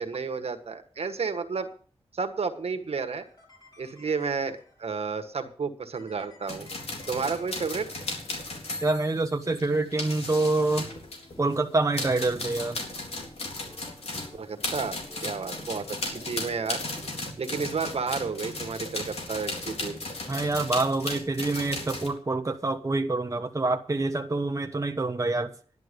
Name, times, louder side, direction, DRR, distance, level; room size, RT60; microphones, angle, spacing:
voice 1, 0.0-1.7 2.1-3.2 3.8-6.7 7.1-7.9 14.3-15.0 15.2-16.8 17.4-20.0, right 5 dB, 70° right, 1.6 m, -31 dB
sound 1, 3.1-5.1 5.9-8.8 9.7-17.2, left 1 dB, 40° left, 5.5 m, -54 dB
sound 2, 6.5-11.6 11.9-22.1, left 2 dB, 75° left, 4.0 m, -36 dB
voice 2, 8.8-10.9 11.4-12.8 20.3-25.5, right 2 dB, 30° right, 1.0 m, -26 dB
11.5 x 10.5 x 5.3 m
wide cardioid pair, 70°, 11 cm